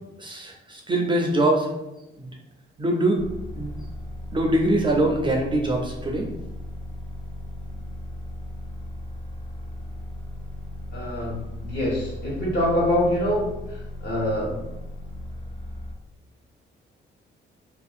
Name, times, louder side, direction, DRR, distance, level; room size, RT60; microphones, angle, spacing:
voice 1, 0.2-1.8 2.2-2.4 2.8-3.2 3.6-3.7 4.3-6.3, right 1 dB, 25° right, 1 dB, 0.4 m, -23 dB
sound 1, 3.2-15.9, left 1 dB, 30° left, 0.5 m, -36 dB
voice 2, 10.9-14.6, left 1 dB, 55° left, -4 dB, 1.2 m, -25 dB
2.5 x 2.4 x 2.4 m, 0.95 s
cardioid pair, 90°, 20 cm